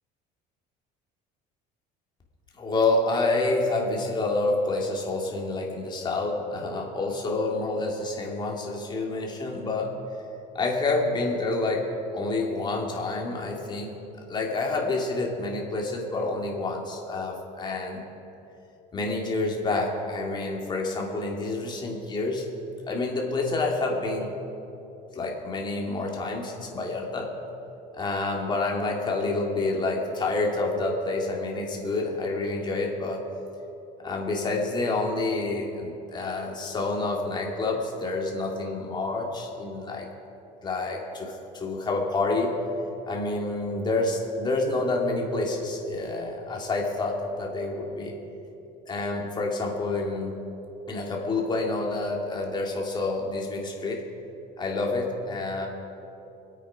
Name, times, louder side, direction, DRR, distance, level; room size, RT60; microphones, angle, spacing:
voice 1, 2.6-9.9 10.5-11.9 12.1-14.0 14.3-18.0 18.9-22.5 22.9-24.3 25.1-27.3 27.9-33.2 34.0-40.1 40.6-42.5 43.1-48.1 48.9-50.4 50.9-54.0 54.6-55.7, left 2 dB, 25° left, -1 dB, 2.6 m, -28 dB
25.0 x 8.6 x 5.1 m, 2.9 s
cardioid pair, 135°, 17 cm